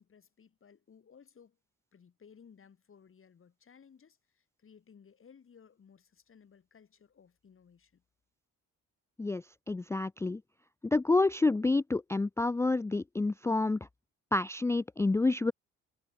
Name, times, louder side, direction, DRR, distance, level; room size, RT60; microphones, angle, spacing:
voice 1, 0.0-1.6 1.9-8.0, left 6 dB, 45° left, 4.3 m, -59 dB
voice 2, 9.2-10.4 10.8-13.8 14.3-15.5, left 3 dB, 10° left, 0.4 m, -28 dB
cardioid pair, 90°, 30 cm